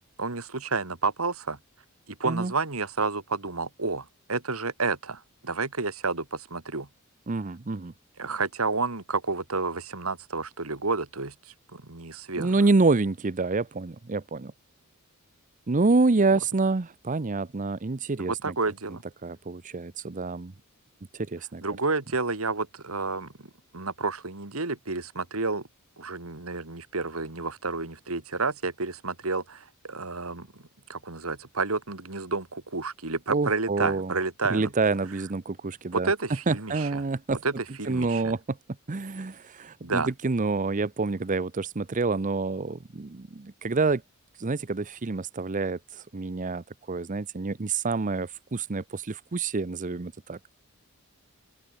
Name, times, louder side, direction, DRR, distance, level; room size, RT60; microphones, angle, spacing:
voice 1, 0.2-1.6 2.1-6.9 8.2-11.3 11.7-12.5 18.2-19.0 21.6-23.3 23.7-25.7 26.0-30.6 30.9-34.7 35.9-37.0 37.4-38.3 39.8-40.1, right 3 dB, 85° right, 2.5 m, -30 dB
voice 2, 7.3-7.9 12.4-14.5 15.7-18.5 19.2-20.5 21.1-21.6 33.3-34.1 34.5-36.1 36.5-37.4 37.9-38.6 38.9-44.0 44.4-50.4, right 3 dB, 35° right, 0.7 m, -27 dB
open air
head